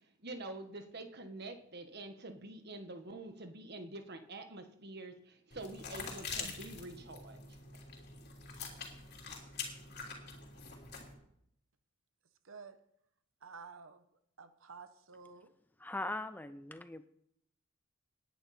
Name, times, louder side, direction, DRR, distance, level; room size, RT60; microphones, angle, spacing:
voice 1, 0.2-7.4, right 2 dB, 50° right, 1.5 m, -46 dB
sound 1, 5.5-11.1, left 5 dB, 50° left, 3.3 m, -45 dB
voice 2, 12.4-12.8 13.4-14.0 14.4-15.5, right 5 dB, 70° right, 1.0 m, -51 dB
voice 3, 15.8-17.1, left 2 dB, 10° left, 0.5 m, -40 dB
18.5 x 10.5 x 4.4 m
head